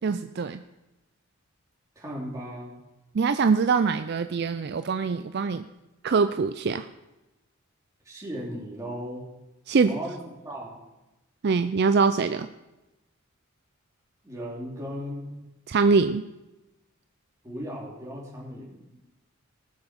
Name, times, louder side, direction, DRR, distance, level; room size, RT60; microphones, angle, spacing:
voice 1, 0.0-0.6 3.1-5.7 6.0-6.9 9.7-10.0 11.4-12.5 15.7-16.2, right 5 dB, 50° right, 10 dB, 0.4 m, -23 dB
voice 2, 1.9-2.7 8.0-9.2 9.8-10.2 10.4-10.8 14.2-15.3 17.4-19.0, equal, 15° right, -4 dB, 3.2 m, -36 dB
19.5 x 6.9 x 5.3 m, 1.0 s
head